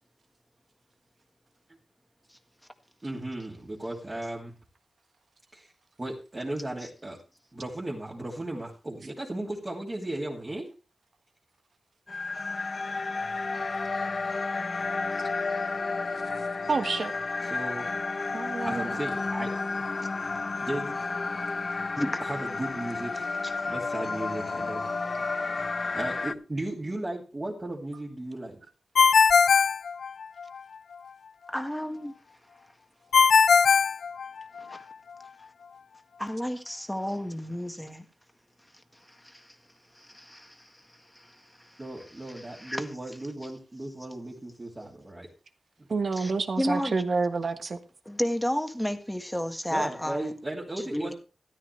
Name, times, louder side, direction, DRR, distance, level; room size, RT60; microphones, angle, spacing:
voice 1, 3.0-4.5 5.5-5.7 6.0-7.2 7.5-10.7 17.4-18.0 18.6-19.5 20.7-21.0 22.2-23.4 23.7-24.9 25.2-28.6 41.8-45.3 45.8-45.9 49.7-51.1, right 1 dB, 25° right, 2.7 m, -36 dB
sound 1, 12.1-26.3, left 3 dB, 40° left, 0.7 m, -31 dB
voice 2, 16.7-17.1 18.3-18.9 29.5-29.6 45.9-47.8, right 4 dB, 50° right, 1.4 m, -28 dB
Ringtone, 28.9-30.6 33.1-34.8, left 6 dB, 85° left, 0.5 m, -20 dB
voice 3, 31.5-32.1 34.6-34.9 36.2-38.0 38.9-39.5 39.9-42.8 46.1-46.3 46.6-46.9 48.0-50.3 50.9-51.1, equal, 5° left, 1.7 m, -32 dB
13.5 x 12.5 x 3.3 m
wide cardioid pair, 120°, 0 cm